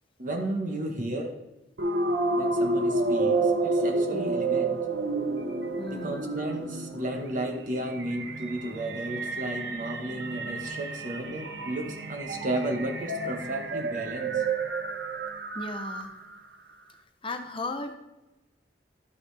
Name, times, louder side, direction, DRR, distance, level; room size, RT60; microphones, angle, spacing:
voice 1, 0.2-1.4 2.3-4.8 5.9-14.4, right 1 dB, 50° right, 3 dB, 1.1 m, -33 dB
sound 1, 1.8-16.3, right 3 dB, 70° right, 0.9 m, -30 dB
voice 2, 4.1-4.4 5.8-6.2 15.5-16.1 17.2-17.9, left 2 dB, 30° left, 6 dB, 0.6 m, -36 dB
12.0 x 5.8 x 3.3 m, 0.99 s
head